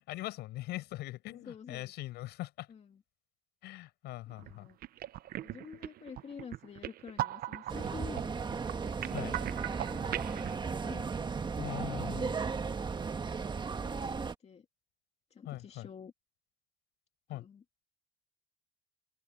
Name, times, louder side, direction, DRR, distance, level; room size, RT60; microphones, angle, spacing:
voice 1, 0.0-2.7 3.6-4.7 9.1-9.4 11.6-12.4 15.5-15.9 17.3-17.4, left 17 dB, 85° left, 7.3 m, -41 dB
voice 2, 1.3-1.9 2.7-3.0 4.3-4.8 5.4-8.3 8.7-9.5 9.9-11.1 13.6-14.7 15.3-16.1 17.3-17.6, left 6 dB, 40° left, 2.4 m, -49 dB
sound 1, 4.3-4.5 4.8-10.5, right 13 dB, 60° right, 0.7 m, -39 dB
sound 2, 7.7-14.3, right 5 dB, 25° right, 1.4 m, -35 dB
open air
cardioid pair, 110°, 17 cm